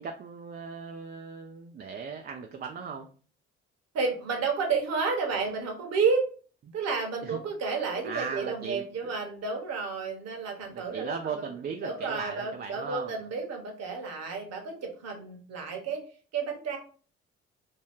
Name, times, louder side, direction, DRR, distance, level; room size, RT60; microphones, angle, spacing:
voice 1, 0.0-3.1 6.7-6.8 7.2-7.4 8.0-9.1 10.7-13.2, right 6 dB, 30° right, 4 dB, 0.4 m, -38 dB
voice 2, 3.9-6.2 6.7-11.4 11.8-16.0 16.3-16.8, right 4 dB, 50° right, 2 dB, 1.0 m, -31 dB
2.8 x 2.2 x 3.5 m, 0.40 s
hypercardioid pair, 50°, 33 cm